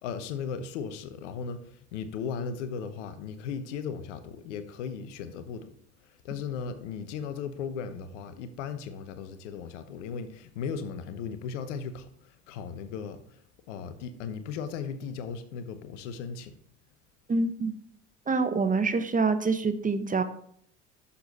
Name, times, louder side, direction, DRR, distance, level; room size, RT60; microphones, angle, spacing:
voice 1, 0.0-5.7 6.2-13.2 13.7-16.5, left 6 dB, 75° left, 1.1 m, -36 dB
voice 2, 17.3-17.7 18.3-20.2, right 4 dB, 20° right, 1.1 m, -26 dB
11.5 x 7.1 x 4.2 m
hypercardioid pair, 65°, 36 cm